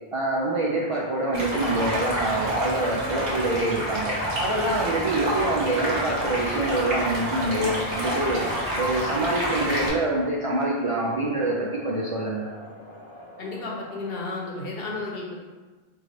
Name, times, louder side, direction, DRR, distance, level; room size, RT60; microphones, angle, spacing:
voice 1, 0.1-4.1 4.4-8.4 8.8-12.5, right 2 dB, 50° right, -5 dB, 0.4 m, -26 dB
sound 1, 0.5-14.2, left 1 dB, 35° left, 0.5 m, -44 dB
Stream, 1.3-9.9, equal, 70° right, 1.2 m, -28 dB
voice 2, 13.4-15.4, left 3 dB, 70° left, -2 dB, 1.0 m, -33 dB
3.4 x 3.1 x 3.8 m, 1.3 s
omnidirectional pair, 1.1 m